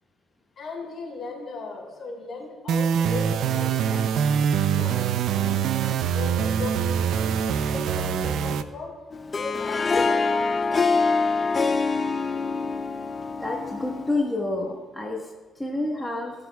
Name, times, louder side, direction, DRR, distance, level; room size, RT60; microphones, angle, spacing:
voice 1, 0.6-4.0 4.7-5.0 5.3-8.9 9.3-10.4, left 3 dB, 60° left, -2 dB, 3.8 m, -37 dB
sound 1, 2.7-8.6, right 8 dB, 80° right, 0.5 m, -24 dB
Harp, 9.1-14.3, left 4 dB, 35° left, 0.5 m, -25 dB
voice 2, 13.4-16.3, left 2 dB, 10° left, -2 dB, 1.3 m, -29 dB
19.5 x 8.6 x 2.4 m, 1.3 s
cardioid pair, 90°, 0 cm